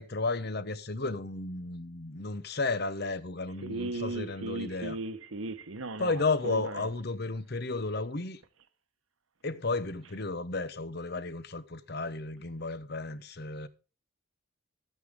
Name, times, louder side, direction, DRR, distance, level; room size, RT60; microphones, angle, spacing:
voice 1, 0.0-5.0 6.0-8.4 9.4-13.7, left 3 dB, 50° left, 0.9 m, -33 dB
voice 2, 3.6-6.8, right 2 dB, 75° right, 1.1 m, -37 dB
13.0 x 9.2 x 3.6 m
head